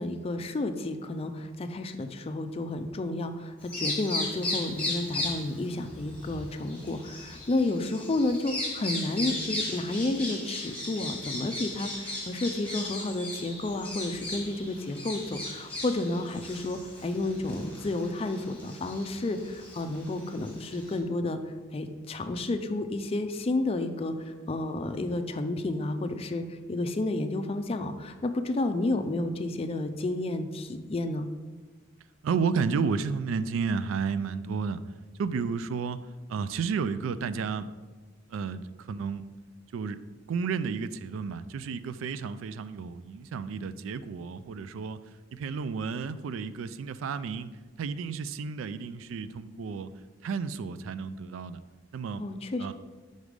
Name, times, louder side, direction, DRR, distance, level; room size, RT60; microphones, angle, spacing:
voice 1, 0.0-21.4 21.7-24.1 24.5-26.4 26.7-31.3 52.2-52.7, left 2 dB, 30° left, 8 dB, 0.4 m, -31 dB
Bird vocalization bird call bird song, 3.6-21.0, left 2 dB, 5° left, 1.3 m, -37 dB
voice 2, 32.2-34.8 35.2-37.7 38.3-39.2 39.7-40.0 40.3-45.0 45.3-49.9 50.2-51.6 51.9-52.3 52.6-52.7, right 5 dB, 85° right, 14 dB, 0.3 m, -32 dB
4.9 x 4.0 x 5.1 m, 1.3 s
head